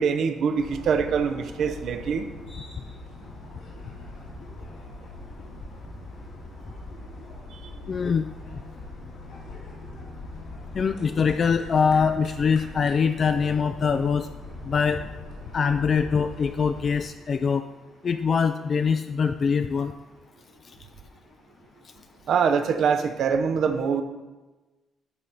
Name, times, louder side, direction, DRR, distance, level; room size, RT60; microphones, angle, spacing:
voice 1, 0.0-2.3 7.6-7.7 22.3-24.0, right 6 dB, 70° right, 8 dB, 0.6 m, -24 dB
sound 1, 0.6-17.0, left 2 dB, 85° left, 2.4 m, -41 dB
voice 2, 7.9-8.3 10.7-14.3 14.7-15.1 15.5-17.6 18.0-19.9, left 6 dB, 50° left, 7 dB, 0.3 m, -23 dB
11.0 x 4.1 x 4.4 m, 1.2 s
cardioid pair, 90°, 0 cm